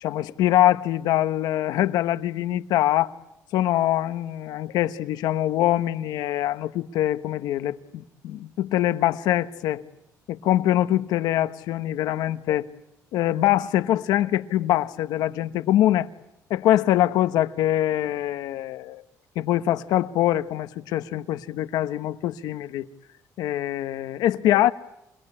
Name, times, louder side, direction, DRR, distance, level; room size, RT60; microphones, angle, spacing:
voice 1, 0.0-3.1 3.5-9.8 10.3-12.7 13.1-16.1 16.5-19.0 19.3-22.9 23.4-24.7, left 13 dB, 90° left, 1.1 m, -23 dB
28.5 x 20.0 x 9.8 m
cardioid pair, 175°, 7 cm